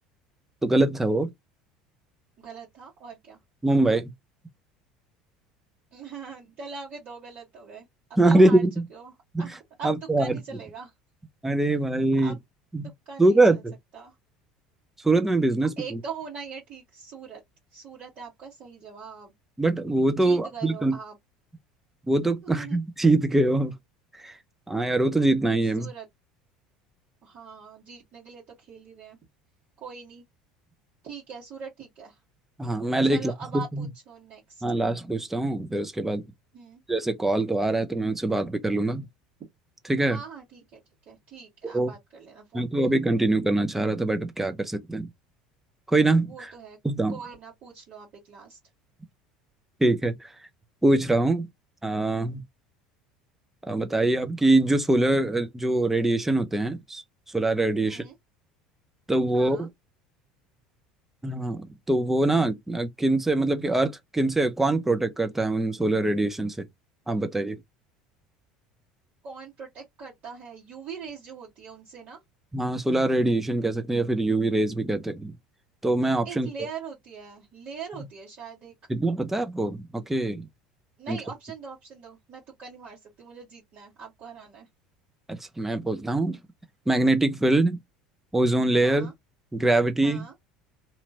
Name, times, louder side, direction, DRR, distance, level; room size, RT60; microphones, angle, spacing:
voice 1, 0.6-1.3 3.6-4.1 8.2-8.7 9.8-10.4 11.4-12.3 12.7-12.9 13.2-13.7 15.0-15.7 19.6-21.0 22.1-23.7 24.2-24.3 24.7-25.9 32.6-33.9 34.6-36.2 36.9-39.1 39.9-40.2 41.6-41.9 42.5-45.1 45.9-46.5 46.8-47.2 49.8-50.2 50.8-51.5 51.8-52.4 53.7-57.0 57.3-58.0 59.1-59.7 61.2-66.6 67.1-67.6 72.5-75.3 75.8-76.5 78.9-80.5 81.1-81.2 85.3-86.4 86.9-87.8 88.3-89.1 89.5-90.2, right 2 dB, 10° right, 0.7 m, -23 dB
voice 2, 2.4-3.4 5.9-9.1 9.4-10.9 12.2-12.4 13.0-13.6 13.9-14.1 15.8-17.4 17.7-19.3 20.2-21.2 22.4-22.8 25.8-26.0 27.2-29.2 29.8-30.2 31.0-32.2 33.0-34.6 36.5-36.8 40.1-40.8 41.1-42.9 46.2-46.8 47.1-48.6 57.8-58.2 59.3-59.7 69.2-72.2 76.2-78.7 81.0-84.7 88.8-89.1 90.0-90.3, right 6 dB, 45° right, 1.5 m, -42 dB
2.9 x 2.5 x 2.9 m
figure-of-eight pair, 70°, 4 cm